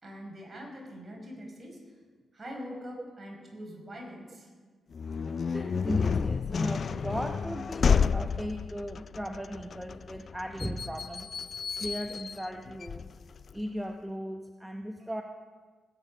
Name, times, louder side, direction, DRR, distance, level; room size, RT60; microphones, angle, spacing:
voice 1, 0.0-2.0 2.3-4.5, equal, 30° right, 0 dB, 5.0 m, -43 dB
sound 1, 4.9-13.6, left 6 dB, 55° left, 0.4 m, -31 dB
voice 2, 5.3-11.3 11.8-13.1 13.5-15.2, equal, 5° right, 4 dB, 0.9 m, -37 dB
17.5 x 8.9 x 5.5 m, 1.5 s
cardioid pair, 65°, 0 cm